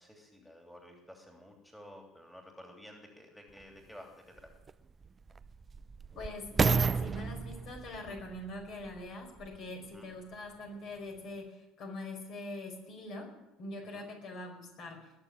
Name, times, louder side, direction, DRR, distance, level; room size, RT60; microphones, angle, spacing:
voice 1, 0.0-4.5 9.9-10.1 13.9-14.1, left 1 dB, 5° left, 2 dB, 3.0 m, -52 dB
sound 1, 3.6-3.7 4.4-9.7 10.3-10.4, right 5 dB, 30° right, 0.5 m, -33 dB
voice 2, 6.1-13.3 13.6-15.1, left 2 dB, 55° left, 2 dB, 4.9 m, -43 dB
20.5 x 6.9 x 8.9 m, 0.96 s
figure-of-eight pair, 65°, 0 cm